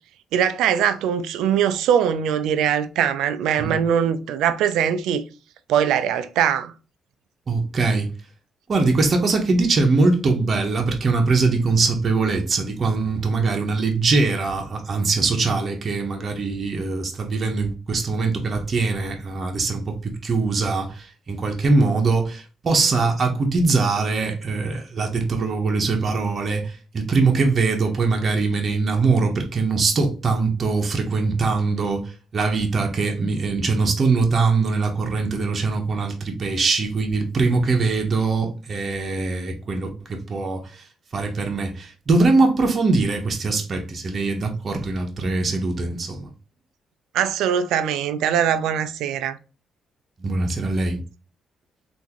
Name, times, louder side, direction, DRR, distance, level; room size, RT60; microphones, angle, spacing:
voice 1, 0.3-5.2 5.7-6.7 47.1-49.4, right 8 dB, 90° right, 0.3 m, -21 dB
voice 2, 7.5-8.1 8.7-40.8 41.1-46.3 50.2-51.0, right 3 dB, 40° right, 0.8 m, -22 dB
3.5 x 2.6 x 2.9 m
cardioid pair, 90°, 0 cm